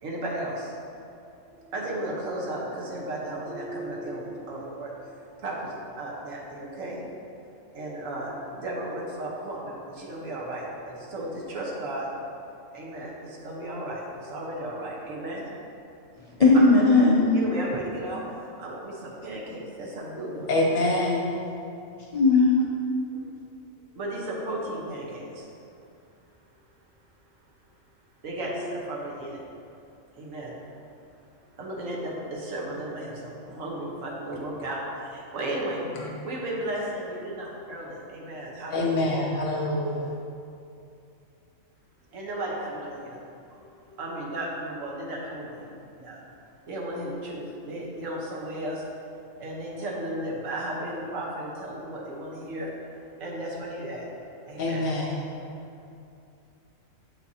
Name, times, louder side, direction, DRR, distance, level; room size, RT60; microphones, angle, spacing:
voice 1, 0.0-0.7 1.3-7.0 7.7-12.1 12.7-15.5 17.3-20.5 23.1-23.2 23.9-25.5 28.2-29.4 30.1-30.5 31.6-35.8 36.2-39.1 42.1-43.2 43.5-46.2 46.7-54.8, right 1 dB, 75° right, -3 dB, 1.5 m, -35 dB
voice 2, 16.4-17.3 22.1-22.6, left 3 dB, 40° left, -5 dB, 0.5 m, -17 dB
voice 3, 20.5-21.4 36.0-36.1 38.7-40.1 54.6-55.2, left 1 dB, 80° left, -2 dB, 1.5 m, -25 dB
7.8 x 5.8 x 2.8 m, 2.6 s
omnidirectional pair, 1.4 m